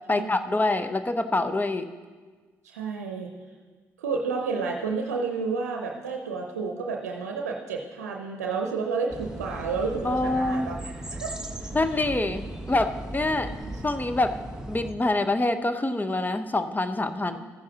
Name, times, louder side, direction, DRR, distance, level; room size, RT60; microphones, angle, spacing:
voice 1, 0.1-1.9 10.0-10.7 11.7-13.5 13.8-14.4 14.7-17.4, left 2 dB, 20° left, 10 dB, 0.8 m, -25 dB
voice 2, 2.6-3.3 4.0-11.7 13.7-13.8 17.3-17.4, right 4 dB, 90° right, 1 dB, 0.6 m, -31 dB
sound 1, 9.1-14.9, right 1 dB, 10° right, 1.2 m, -37 dB
14.0 x 9.6 x 2.9 m, 1.4 s
hypercardioid pair, 45°, 8 cm